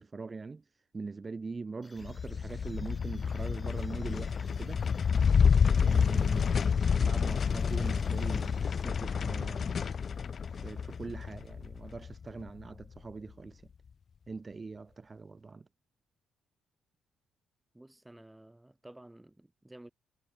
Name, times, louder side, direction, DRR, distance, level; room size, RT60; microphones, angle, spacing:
voice 1, 0.0-4.9 5.8-10.0 10.4-13.7 14.3-15.7, right 4 dB, 30° right, 0.4 m, -42 dB
sound 1, 1.8-9.3, left 3 dB, 25° left, 4.4 m, -60 dB
sound 2, 2.0-12.6, left 6 dB, 45° left, 0.3 m, -29 dB
voice 2, 17.7-19.9, right 1 dB, 10° right, 3.2 m, -53 dB
cardioid pair, 90°, 0 cm